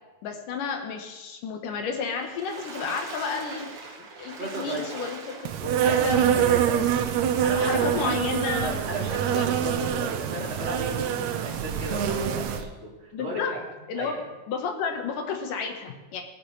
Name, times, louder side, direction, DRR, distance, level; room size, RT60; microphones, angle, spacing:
voice 1, 0.2-3.7 4.2-6.2 6.7-6.8 7.5-8.8 9.3-9.5 13.1-13.5 13.9-14.2 14.5-16.2, left 5 dB, 90° left, 4 dB, 2.9 m, -31 dB
Water / Splash splatter, 2.1-5.9 6.5-6.6 6.9-7.0, right 3 dB, 45° right, 1.9 m, -41 dB
voice 2, 4.3-4.9 5.6-7.0 7.4-8.2 8.6-13.6 14.0-14.2, right 1 dB, 20° right, -5 dB, 3.2 m, -35 dB
Insect, 5.4-12.6, right 9 dB, 75° right, 2.0 m, -25 dB
18.5 x 10.0 x 3.3 m, 1.1 s
omnidirectional pair, 3.6 m